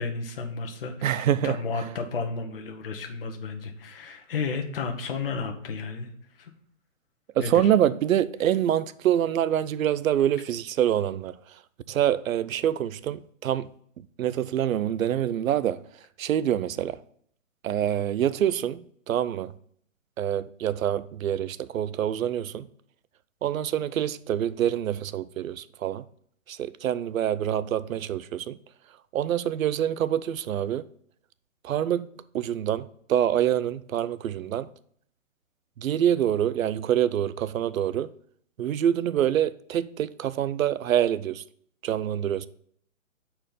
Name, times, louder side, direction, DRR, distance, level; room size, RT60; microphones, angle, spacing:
voice 1, 0.0-6.1 6.4-6.5 7.4-7.7, left 4 dB, 45° left, 1.0 m, -32 dB
voice 2, 1.0-1.5 7.4-11.3 11.9-13.7 14.2-15.8 16.2-17.0 17.6-19.5 20.2-22.7 23.4-26.0 26.5-28.6 29.1-30.9 31.6-32.1 32.3-34.7 35.8-38.1 38.6-41.4 41.8-42.5, right 10 dB, 90° right, 0.5 m, -26 dB
5.8 x 4.4 x 5.1 m
hypercardioid pair, 160°, 39 cm